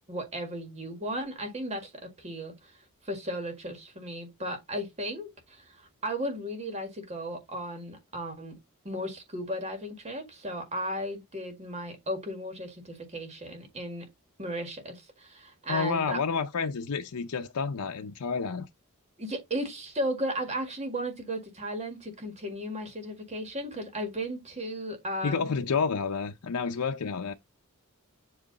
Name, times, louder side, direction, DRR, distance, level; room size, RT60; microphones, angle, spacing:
voice 1, 0.1-2.7 3.0-8.5 8.9-14.1 14.4-16.2 19.2-25.6, equal, 30° right, 1.8 m, -35 dB
voice 2, 15.7-18.7 25.2-27.3, left 5 dB, 85° left, 0.6 m, -30 dB
7.8 x 3.1 x 3.9 m
head